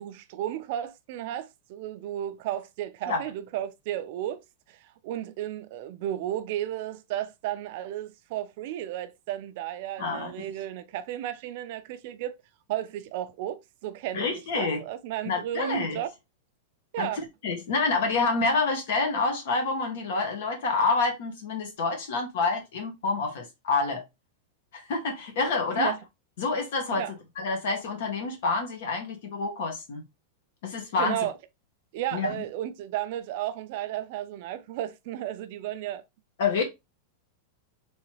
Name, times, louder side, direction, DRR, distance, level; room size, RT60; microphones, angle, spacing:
voice 1, 0.0-12.4 12.7-16.1 16.9-17.2 25.7-26.0 26.9-27.1 31.0-31.3 31.9-36.0, right 12 dB, 50° right, 0.5 m, -33 dB
voice 2, 10.0-10.3 14.1-14.8 15.2-16.0 17.0-24.0 24.7-25.9 26.4-27.0 27.4-30.0 30.6-31.2 32.1-32.4 36.4-36.6, left 4 dB, 70° left, 1.7 m, -28 dB
4.0 x 3.2 x 3.0 m
supercardioid pair, 160°, 0 cm